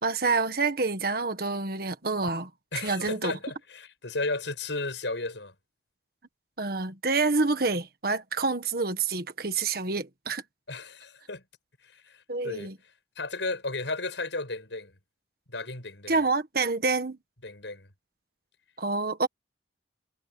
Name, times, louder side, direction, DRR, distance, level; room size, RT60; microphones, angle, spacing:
voice 1, 0.0-2.5 2.8-3.3 6.6-10.4 12.3-12.8 16.1-17.2 18.8-19.3, right 3 dB, 55° right, 1.7 m, -27 dB
voice 2, 2.7-5.5 10.7-11.4 11.8-12.7 13.2-14.9 15.5-16.1 17.4-17.9, left 3 dB, 85° left, 6.5 m, -34 dB
head